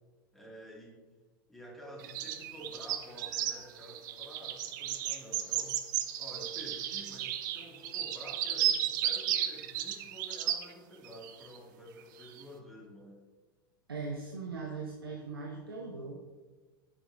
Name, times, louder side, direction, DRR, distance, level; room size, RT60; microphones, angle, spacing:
voice 1, 0.3-1.0 1.5-5.8 6.2-13.2, equal, ahead, -3 dB, 1.9 m, -50 dB
sound 1, 2.0-10.7 11.0-11.6 12.2-12.4, right 11 dB, 55° right, 0.6 m, -34 dB
voice 2, 13.9-16.2, right 4 dB, 85° right, -1 dB, 0.9 m, -39 dB
8.5 x 6.7 x 2.5 m, 1.3 s
figure-of-eight pair, 90°, 12 cm